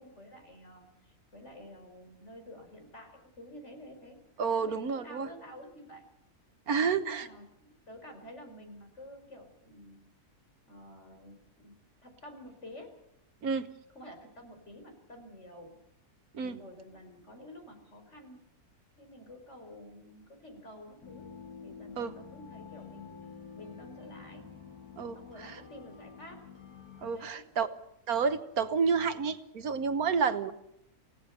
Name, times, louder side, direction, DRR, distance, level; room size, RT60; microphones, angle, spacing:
voice 1, 0.0-4.2 4.5-6.0 6.8-10.0 10.7-12.9 13.9-15.7 16.4-18.4 19.0-21.3 21.6-24.4 25.1-26.5 27.1-27.5 30.4-30.5, left 1 dB, 45° left, 4 dB, 5.2 m, -50 dB
voice 2, 4.4-5.3 6.7-7.3 13.4-13.7 16.3-16.6 22.0-22.1 25.0-25.1 25.4-25.6 27.0-27.7 28.1-30.5, right 5 dB, 70° right, 11 dB, 1.6 m, -30 dB
sound 1, 21.0-27.1, left 6 dB, 80° left, 3.5 m, -49 dB
27.5 x 17.5 x 6.8 m, 0.78 s
omnidirectional pair, 1.7 m